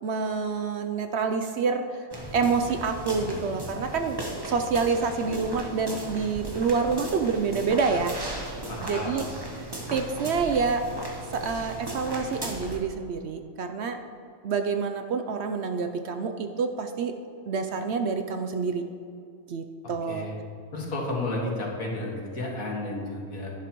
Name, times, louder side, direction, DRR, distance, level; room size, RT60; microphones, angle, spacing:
voice 1, 0.0-1.9 2.3-4.2 4.5-8.2 8.8-9.3 9.6-10.9 11.3-14.0 14.4-17.1 17.5-18.8 19.5-20.3, right 5 dB, 65° right, 7 dB, 0.7 m, -27 dB
sound 1, 2.1-12.8, right 1 dB, 20° right, 0.9 m, -37 dB
voice 2, 8.7-9.2 20.1-20.3 20.7-23.5, left 2 dB, 80° left, -2 dB, 2.2 m, -32 dB
11.0 x 10.5 x 3.0 m, 2.5 s
omnidirectional pair, 1.4 m